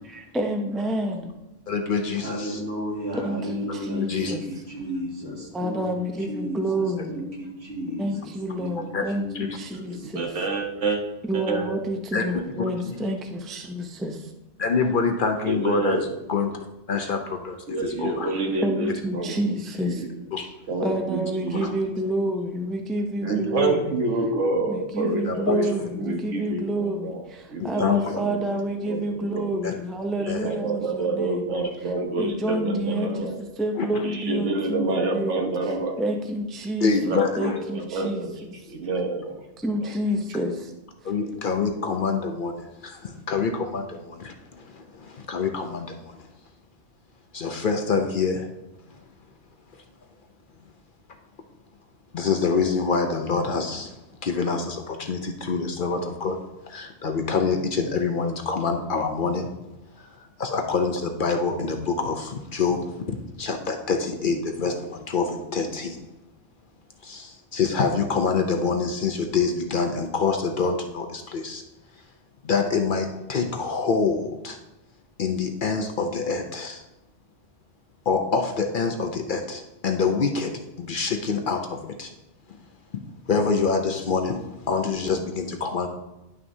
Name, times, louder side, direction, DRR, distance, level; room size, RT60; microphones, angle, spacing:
voice 1, 0.0-1.3 3.1-4.5 5.5-7.1 8.0-10.3 11.2-14.3 18.6-20.0 20.8-23.9 24.7-31.5 32.2-35.4 36.0-38.3 39.6-40.7 41.0-41.1, right 1 dB, ahead, 4 dB, 0.4 m, -29 dB
voice 2, 1.7-2.6 3.9-4.4 8.9-9.0 12.1-12.2 12.9-13.0 14.6-16.6 16.9-17.6 18.0-18.3 20.3-20.5 21.6-21.7 25.3-25.6 27.6-28.2 29.6-29.7 30.3-30.5 33.8-34.0 36.8-37.6 41.0-46.3 47.3-48.5 52.1-54.0 54.2-56.4 56.7-59.5 60.0-60.1 60.4-66.0 67.0-71.6 72.4-74.6 75.2-76.8 78.1-82.1 82.5-82.6 83.3-85.9, left 5 dB, 55° left, 4 dB, 0.7 m, -26 dB
voice 3, 2.2-5.8 6.2-8.3 8.6-8.9 9.2-10.1, equal, 65° right, -4 dB, 2.3 m, -34 dB
voice 4, 9.9-11.0 11.3-11.7 12.3-12.5 15.4-16.1 17.7-20.1 20.7-21.7 23.2-27.2 27.5-29.5 30.2-33.4 34.0-36.0 37.1-38.3 38.6-39.4 39.8-39.9, right 2 dB, 90° right, 2 dB, 1.4 m, -28 dB
11.0 x 5.8 x 2.7 m, 0.99 s
omnidirectional pair, 1.2 m